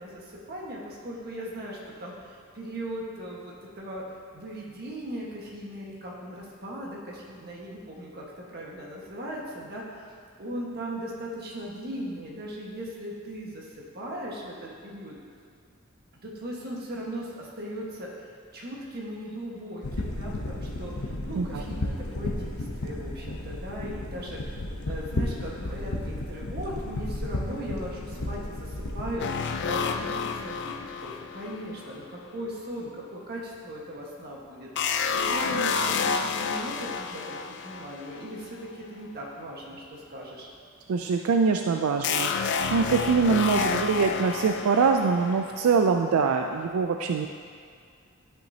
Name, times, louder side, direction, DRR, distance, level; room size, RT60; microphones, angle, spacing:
voice 1, 0.0-4.0 4.3-10.1 10.4-15.2 16.2-24.6 24.8-40.5, equal, 50° right, -3 dB, 1.5 m, -38 dB
sound 1, 19.8-29.2, left 1 dB, 85° left, 0.8 m, -33 dB
sound 2, 29.2-32.1 34.7-38.3 42.0-45.8, left 5 dB, 55° left, 0.4 m, -30 dB
voice 2, 40.9-47.3, right 5 dB, 80° right, 4 dB, 0.4 m, -24 dB
11.5 x 6.1 x 2.8 m, 2.2 s
head